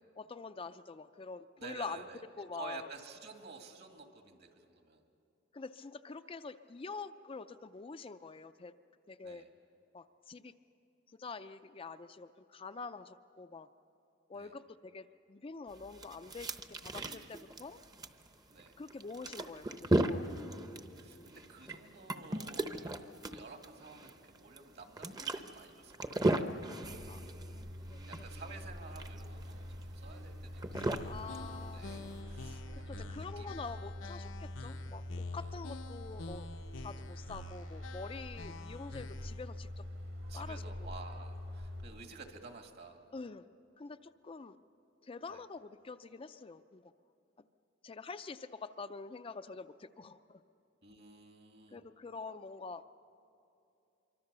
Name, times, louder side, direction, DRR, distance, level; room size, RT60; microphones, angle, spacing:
voice 1, 0.0-2.0 2.4-2.9 5.5-8.7 9.1-9.4 9.9-10.5 11.2-13.7 14.3-17.8 18.8-20.3 27.1-27.2 27.5-28.0 31.0-31.9 32.5-36.5 36.8-39.8 40.3-40.6 43.1-43.5 43.8-44.6 45.0-46.9 47.8-50.4 51.7-52.9, left 4 dB, 30° left, 10 dB, 0.5 m, -46 dB
voice 2, 1.6-2.2 2.5-5.0 9.2-9.5 14.3-14.5 16.9-17.3 18.5-18.8 21.0-23.0 23.3-26.4 28.1-32.6 32.9-33.6 34.0-34.1 38.4-39.0 40.3-43.0 45.3-45.4 50.8-51.9, right 4 dB, 55° right, 4 dB, 2.2 m, -52 dB
sound 1, 15.7-32.2, right 1 dB, 20° right, 0.8 m, -37 dB
sound 2, 26.8-41.8, left 1 dB, 80° right, 3.6 m, -45 dB
sound 3, 30.7-39.5, left 4 dB, 75° left, 0.8 m, -49 dB
25.0 x 24.5 x 6.8 m, 2.7 s
head